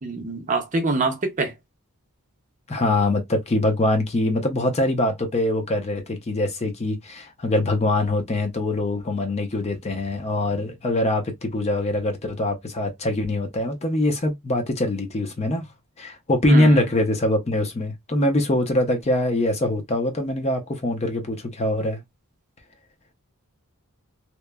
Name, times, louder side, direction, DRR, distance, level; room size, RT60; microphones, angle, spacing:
voice 1, 0.0-1.5 16.5-16.8, right 3 dB, 35° right, 0.6 m, -24 dB
voice 2, 2.7-15.7 16.0-22.0, left 1 dB, 30° left, 0.5 m, -23 dB
2.8 x 2.1 x 2.2 m
head